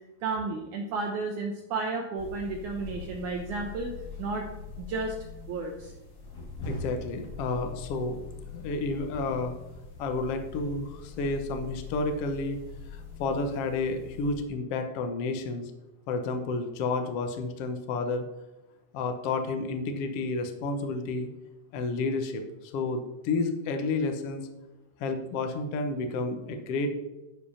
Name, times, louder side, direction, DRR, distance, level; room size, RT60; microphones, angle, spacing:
voice 1, 0.2-4.5 4.8-5.2 5.5-5.9, right 3 dB, 70° right, 1 dB, 2.1 m, -32 dB
sound 1, 2.2-14.4, left 4 dB, 35° left, 1.8 m, -42 dB
voice 2, 6.6-8.2 8.5-9.5 10.0-12.6 12.9-15.7 16.1-18.2 18.9-21.3 21.7-24.5 25.0-26.9, left 3 dB, 70° left, 6 dB, 1.4 m, -31 dB
12.0 x 5.2 x 5.6 m, 1.0 s
omnidirectional pair, 4.2 m